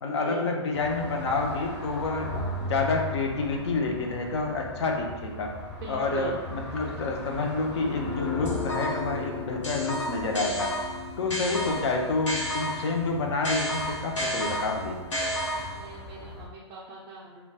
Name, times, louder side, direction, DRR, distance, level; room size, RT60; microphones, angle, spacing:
voice 1, 0.0-2.3 2.6-5.5 5.9-10.7 11.2-15.0, left 3 dB, 65° left, 1 dB, 0.6 m, -28 dB
sound 1, 0.7-16.5, left 1 dB, 30° left, 0.8 m, -39 dB
voice 2, 5.8-6.4 15.5-17.4, right 4 dB, 25° right, -5 dB, 0.4 m, -40 dB
Guitar, 7.9-15.6, left 3 dB, 45° left, 1.2 m, -40 dB
sound 2, 8.5-9.2 9.6-13.0 13.4-15.9, equal, 80° left, 1.0 m, -32 dB
4.0 x 2.2 x 2.2 m, 1.2 s
hypercardioid pair, 150°, 15 cm